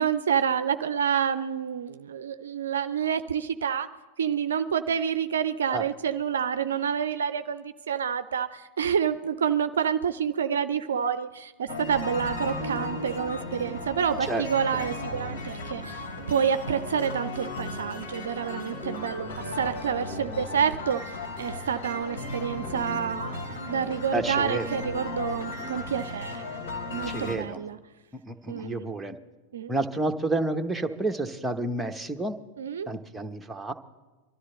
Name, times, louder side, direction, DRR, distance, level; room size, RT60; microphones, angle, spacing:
voice 1, 0.0-3.9 4.2-21.0 21.4-26.6 26.9-27.8 28.5-28.9 29.5-29.7 32.6-32.9, right 7 dB, 65° right, 12 dB, 0.4 m, -28 dB
sound 1, 11.7-27.4, left 2 dB, 55° left, 3.1 m, -35 dB
voice 2, 24.1-24.8 27.1-27.6 28.1-29.2 29.7-32.4 32.9-33.7, right 2 dB, 5° right, 5 dB, 0.9 m, -30 dB
23.5 x 13.0 x 3.9 m, 1.2 s
figure-of-eight pair, 90°, 0 cm